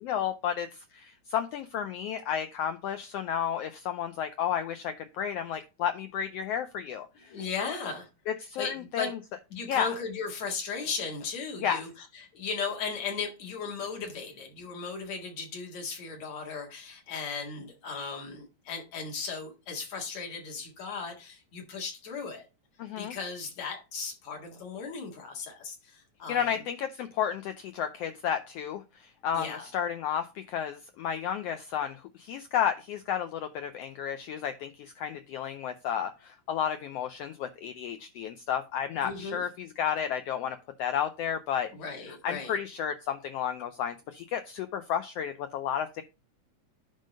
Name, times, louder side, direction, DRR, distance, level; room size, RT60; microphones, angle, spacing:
voice 1, 0.0-7.4 8.3-9.2 9.7-9.9 11.6-11.8 22.8-23.1 26.3-41.7 42.2-46.0, left 9 dB, 85° left, 1.4 m, -32 dB
voice 2, 7.3-8.1 8.6-9.2 9.5-22.5 23.0-26.6 29.3-29.7 39.0-39.4 41.7-42.6, left 5 dB, 65° left, 3.0 m, -36 dB
10.5 x 3.8 x 5.0 m
omnidirectional pair, 3.4 m